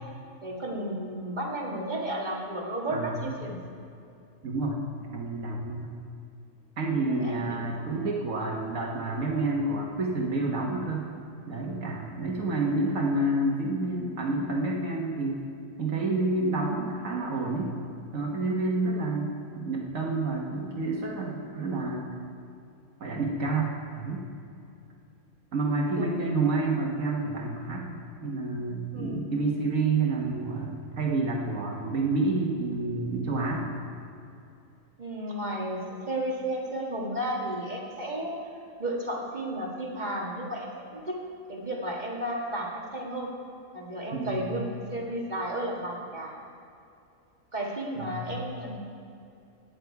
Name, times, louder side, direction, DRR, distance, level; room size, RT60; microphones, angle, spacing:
voice 1, 0.4-3.6 7.1-8.0 26.0-26.4 28.9-29.5 35.0-38.4 38.8-41.2 41.5-43.3 43.7-46.3 47.5-48.8, right 1 dB, 30° right, -2 dB, 1.8 m, -33 dB
voice 2, 2.9-3.3 4.4-5.9 6.8-11.1 11.5-15.4 15.8-17.7 18.1-22.1 23.0-24.2 25.5-33.8 44.1-44.5 48.0-48.2, right 2 dB, 65° right, -1 dB, 1.6 m, -29 dB
15.0 x 10.0 x 4.7 m, 2.6 s
omnidirectional pair, 1.5 m